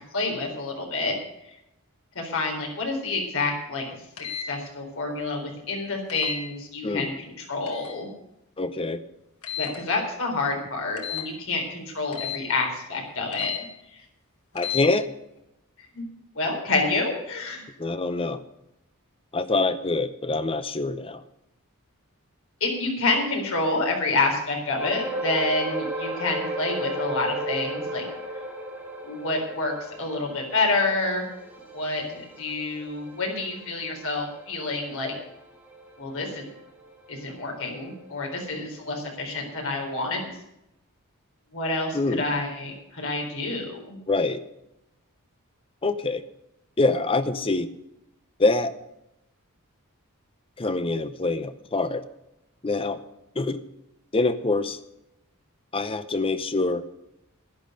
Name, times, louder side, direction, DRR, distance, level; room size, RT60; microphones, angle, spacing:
voice 1, 0.1-1.2 2.2-4.0 4.5-8.1 9.6-13.5 13.9-14.0 15.9-16.0 16.3-17.7 22.6-28.0 29.0-31.2 31.7-35.1 36.0-36.4 37.1-40.3 41.5-44.0, left 3 dB, 65° left, 1 dB, 4.1 m, -28 dB
sound 1, 4.2-4.5 6.1-6.4 7.7-8.0 9.4-9.8 11.0-11.3 12.1-12.4 13.3-13.6 14.5-14.9, left 10 dB, 85° left, 2.4 m, -32 dB
voice 2, 6.8-7.2 8.6-9.0 14.5-15.1 17.8-18.4 19.3-21.2 41.9-42.2 44.1-44.4 45.8-46.2 46.8-47.7 48.4-48.7 50.6-52.0 52.6-53.0 53.4-53.6 54.1-54.8 55.7-56.8, left 3 dB, 25° left, 12 dB, 0.7 m, -25 dB
sound 2, 24.8-37.5 37.8-38.0 38.5-38.6, right 1 dB, 5° right, 2.8 m, -35 dB
11.5 x 11.0 x 6.6 m, 0.85 s
head